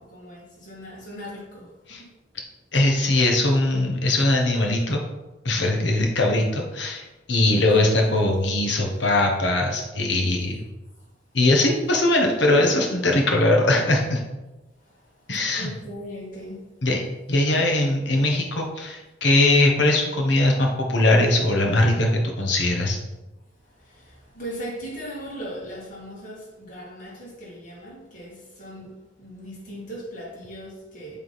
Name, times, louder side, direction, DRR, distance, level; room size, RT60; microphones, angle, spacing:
voice 1, 0.0-2.2 7.5-8.0 11.0-11.1 14.8-16.7 23.6-31.2, equal, 45° left, -5 dB, 2.3 m, -39 dB
voice 2, 2.7-5.0 5.4-10.6 11.3-14.2 15.3-15.7 16.8-17.0 17.3-22.1 22.4-23.0, left 2 dB, 70° left, 1 dB, 1.2 m, -21 dB
7.7 x 3.7 x 4.1 m, 1.1 s
head